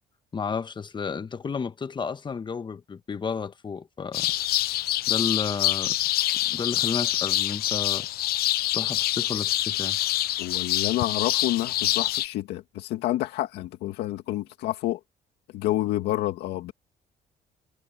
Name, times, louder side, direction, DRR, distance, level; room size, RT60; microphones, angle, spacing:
voice 1, 0.3-4.3 5.1-6.0 6.5-8.1 8.7-10.0, left 5 dB, 25° left, 1.0 m, -32 dB
sound 1, 4.1-12.3, left 15 dB, 65° left, 0.6 m, -26 dB
voice 2, 10.4-15.0 15.5-16.7, left 15 dB, 85° left, 2.0 m, -28 dB
cardioid pair, 110°, 17 cm